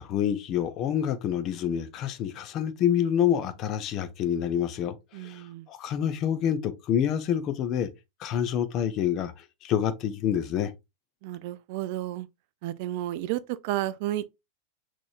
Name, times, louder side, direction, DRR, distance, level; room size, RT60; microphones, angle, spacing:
voice 1, 0.0-7.9 8.2-10.7, left 9 dB, 35° left, 0.6 m, -27 dB
voice 2, 5.1-5.7 11.2-12.3 12.6-14.3, right 14 dB, 45° right, 0.3 m, -32 dB
6.1 x 3.0 x 2.4 m
figure-of-eight pair, 90°, 0 cm